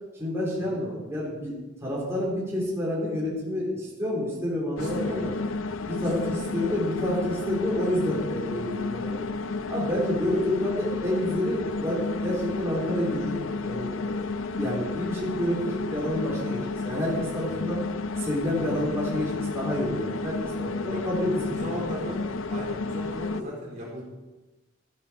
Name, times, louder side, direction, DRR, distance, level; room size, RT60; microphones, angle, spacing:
voice 1, 0.1-5.3 5.9-9.3 9.7-17.8 18.2-21.4, left 1 dB, 15° right, -7 dB, 4.0 m, -29 dB
sound 1, 4.8-23.4, left 3 dB, 80° left, 0.6 m, -32 dB
voice 2, 4.8-5.2 6.0-6.4 17.4-17.5 18.5-18.7 20.9-21.1 21.4-24.0, equal, 40° right, -4 dB, 4.1 m, -37 dB
14.0 x 10.0 x 5.3 m, 1.2 s
head